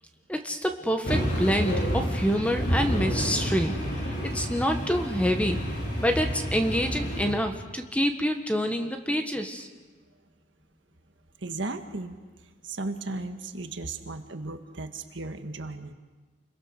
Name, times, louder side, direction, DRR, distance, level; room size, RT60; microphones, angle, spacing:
voice 1, 0.3-3.8 4.2-5.6 6.0-9.7, equal, 5° left, 5 dB, 1.3 m, -27 dB
sound 1, 1.0-7.4, equal, 55° left, 4.8 m, -29 dB
voice 2, 11.4-12.2 12.6-15.9, right 2 dB, 60° right, 6 dB, 1.7 m, -35 dB
29.5 x 22.5 x 6.6 m, 1.4 s
head